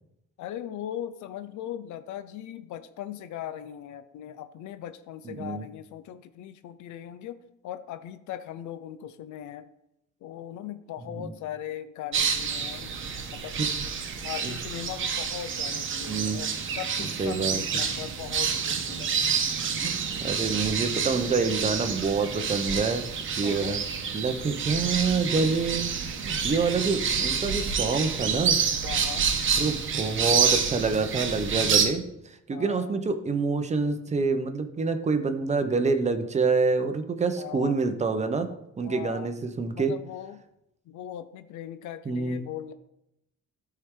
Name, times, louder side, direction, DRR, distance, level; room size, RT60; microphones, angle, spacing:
voice 1, 0.4-9.7 10.2-13.0 13.3-13.6 14.2-19.1 23.4-23.8 28.8-29.3 32.5-32.9 37.4-37.8 38.8-39.3 39.7-40.4 40.9-42.7, left 11 dB, 75° left, 12 dB, 0.7 m, -39 dB
voice 2, 5.2-5.6 11.1-11.3 13.6-13.7 14.1-14.5 16.1-16.4 17.0-17.6 19.8-23.8 24.1-25.9 26.2-28.6 29.6-38.5 38.8-39.9 42.0-42.4, right 4 dB, 25° right, 8 dB, 0.7 m, -27 dB
sound 1, 12.1-31.9, right 6 dB, 40° right, 1.0 m, -28 dB
13.0 x 4.7 x 3.7 m, 0.82 s
cardioid pair, 145°, 30 cm